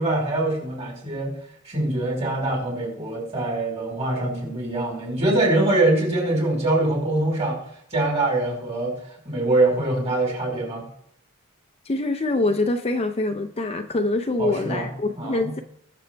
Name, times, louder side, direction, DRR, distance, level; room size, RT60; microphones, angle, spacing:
voice 1, 0.0-1.3 1.6-7.6 7.9-9.0 9.2-10.8 14.4-14.9 15.1-15.5, right 2 dB, 30° right, -1 dB, 4.5 m, -23 dB
voice 2, 11.8-15.6, left 2 dB, 30° left, 6 dB, 0.6 m, -24 dB
20.5 x 7.0 x 3.4 m, 0.72 s
head